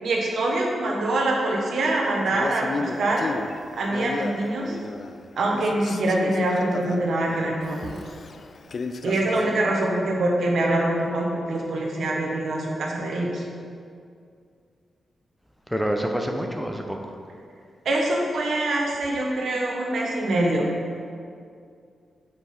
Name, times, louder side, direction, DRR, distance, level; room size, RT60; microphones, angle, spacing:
voice 1, 0.0-3.3 3.7-4.8 5.4-7.9 9.0-13.4 17.8-20.7, right 1 dB, 75° right, -1 dB, 1.2 m, -24 dB
Male speech man speaking, 2.3-5.3 5.5-9.7, left 4 dB, 60° left, 0.4 m, -34 dB
voice 2, 15.7-17.0, equal, ahead, 2 dB, 0.7 m, -27 dB
6.8 x 4.7 x 4.3 m, 2.3 s
cardioid pair, 60°, 0 cm